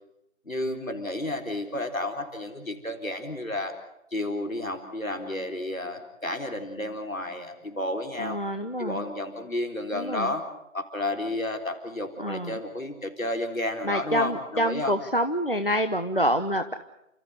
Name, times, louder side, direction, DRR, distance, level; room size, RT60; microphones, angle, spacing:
voice 1, 0.5-3.7 4.1-8.4 8.8-10.4 10.7-14.9, left 1 dB, 75° left, 5 dB, 4.2 m, -31 dB
voice 2, 8.2-9.0 9.9-10.3 12.2-12.6 13.8-16.7, equal, 40° left, 8 dB, 0.9 m, -27 dB
30.0 x 14.5 x 8.1 m, 0.85 s
figure-of-eight pair, 175°, 41 cm